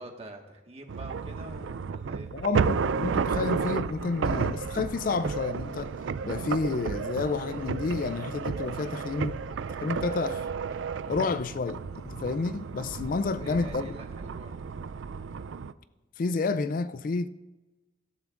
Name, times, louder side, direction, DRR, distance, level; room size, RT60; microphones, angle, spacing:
voice 1, 0.0-2.3 13.2-14.9, right 1 dB, 30° right, 1.5 m, -46 dB
sound 1, 0.9-15.7, right 5 dB, 80° right, 0.4 m, -32 dB
voice 2, 2.3-5.9 6.2-9.4 9.8-10.5 11.1-13.9 16.2-17.3, left 4 dB, 45° left, 0.3 m, -30 dB
Bird vocalization bird call bird song, 3.5-13.8, equal, 20° left, 0.9 m, -52 dB
24.5 x 13.0 x 2.5 m
head